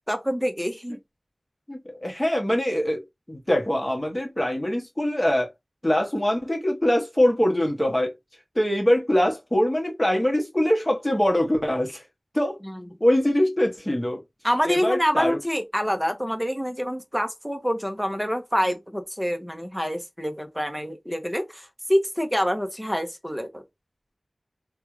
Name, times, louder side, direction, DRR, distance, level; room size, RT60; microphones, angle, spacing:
voice 1, 0.1-1.0 12.6-12.8 14.4-23.6, equal, ahead, 0.9 m, -26 dB
voice 2, 1.7-5.5 5.8-8.1 8.5-12.0 12.3-12.6 13.0-14.2 14.7-15.4, left 1 dB, 20° left, 1.2 m, -23 dB
3.4 x 2.3 x 3.1 m
wide cardioid pair, 65°, 0 cm